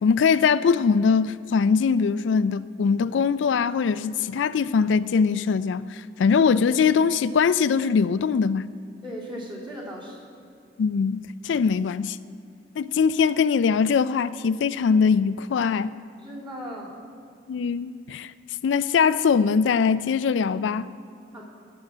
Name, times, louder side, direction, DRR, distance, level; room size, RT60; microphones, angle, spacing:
voice 1, 0.0-8.7 10.8-12.2 12.8-15.9 17.5-18.3 18.6-20.9, left 6 dB, 80° left, 0.3 m, -22 dB
voice 2, 9.0-10.2 16.2-17.0 21.3-21.4, equal, 25° right, 3.2 m, -37 dB
12.0 x 7.5 x 7.2 m
head